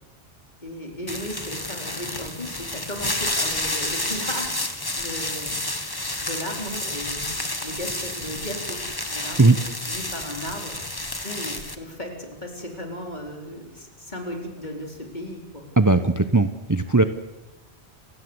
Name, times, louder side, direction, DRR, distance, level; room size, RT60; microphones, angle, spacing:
voice 1, 0.6-5.6 6.2-8.8 9.1-9.6 9.9-10.8 11.2-15.7, equal, 40° left, 2 dB, 4.4 m, -36 dB
sound 1, 1.1-11.7, left 2 dB, 20° left, 1.8 m, -30 dB
voice 2, 15.8-17.0, right 3 dB, 20° right, 10 dB, 0.9 m, -18 dB
29.5 x 17.0 x 8.1 m, 1.1 s
omnidirectional pair, 1.1 m